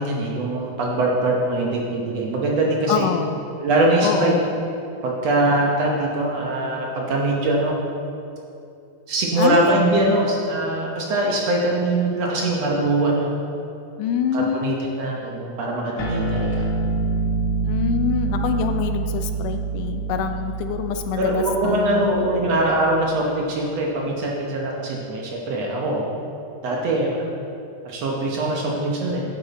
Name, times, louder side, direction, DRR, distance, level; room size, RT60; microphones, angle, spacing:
voice 1, 0.0-3.1 3.6-4.4 5.0-7.8 9.1-13.3 14.3-16.5 21.1-26.1 26.6-27.3 27.9-29.2, right 2 dB, 65° right, -2 dB, 1.9 m, -22 dB
voice 2, 2.9-3.4 4.0-4.5 9.4-9.8 14.0-14.8 17.6-22.5, left 8 dB, 80° left, 6 dB, 2.1 m, -25 dB
sound 1, 16.0-22.8, right 3 dB, 65° left, 1.0 m, -26 dB
10.0 x 8.7 x 4.1 m, 2.6 s
omnidirectional pair, 3.7 m